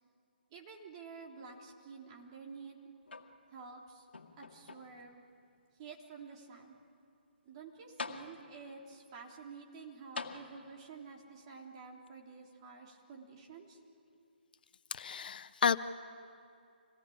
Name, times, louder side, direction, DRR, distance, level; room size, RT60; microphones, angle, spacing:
voice 1, 0.5-2.9 3.5-4.0 4.4-5.2 5.8-6.8 7.4-13.8, right 5 dB, 30° right, 0 dB, 3.4 m, -50 dB
sound 1, 3.1-3.7 4.1-5.1 5.8-5.9 7.5-7.6 8.0-8.8 10.1-11.0 12.1-12.2, left 4 dB, 80° left, 2.0 m, -45 dB
voice 2, 14.9-15.8, left 7 dB, 55° left, 13 dB, 0.8 m, -31 dB
26.5 x 18.5 x 8.7 m, 2.5 s
hypercardioid pair, 155°, 6 cm